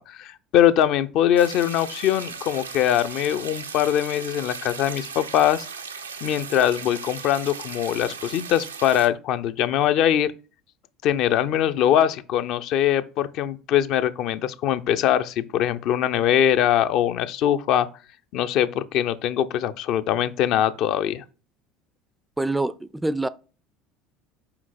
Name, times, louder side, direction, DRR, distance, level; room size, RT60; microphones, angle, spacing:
voice 1, 0.1-5.6 6.2-10.3 11.0-17.9 18.3-21.2, left 10 dB, 50° left, 0.5 m, -22 dB
sound 1, 1.4-9.1, right 5 dB, 80° right, 0.5 m, -37 dB
voice 2, 22.4-23.3, right 2 dB, 10° right, 0.4 m, -25 dB
5.8 x 4.4 x 4.2 m
figure-of-eight pair, 65°, 0 cm